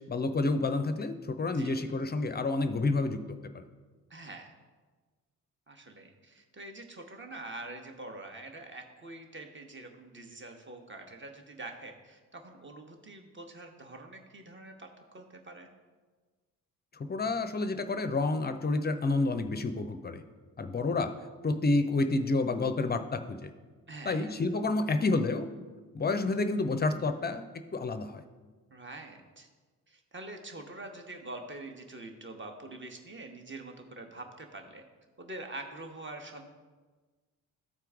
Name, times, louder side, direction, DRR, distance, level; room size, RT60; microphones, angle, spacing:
voice 1, 0.0-3.6 16.9-20.2 20.6-21.1 21.4-23.5 24.0-25.5 25.9-27.5 27.7-28.2, left 3 dB, 20° left, 9 dB, 0.6 m, -29 dB
voice 2, 1.5-1.9 4.1-4.5 5.7-14.9 15.1-15.7 23.9-24.3 28.7-29.5 29.9-34.8 35.2-36.5, right 2 dB, 25° right, 4 dB, 1.2 m, -45 dB
13.0 x 4.5 x 3.6 m, 1.4 s
figure-of-eight pair, 40°, 44 cm